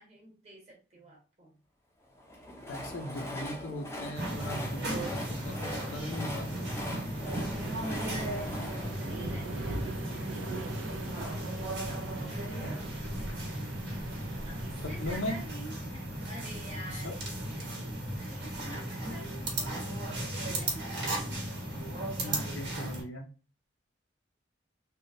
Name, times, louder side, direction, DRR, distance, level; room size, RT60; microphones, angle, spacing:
voice 1, 0.0-1.6 7.9-17.2 17.5-19.4 20.3-21.4, right 1 dB, 35° right, -2 dB, 1.2 m, -49 dB
Train, 2.1-10.3, left 1 dB, 15° left, 0.4 m, -42 dB
voice 2, 2.7-6.7 12.6-12.8 15.0-15.4 16.9-17.1 22.2-23.3, left 1 dB, 85° left, 4 dB, 0.6 m, -39 dB
sound 1, 4.1-23.0, right 1 dB, 60° right, 1.1 m, -36 dB
Waves surf, 7.1-15.5, right 2 dB, 85° right, 0.5 m, -41 dB
3.4 x 2.2 x 2.6 m, 0.35 s
head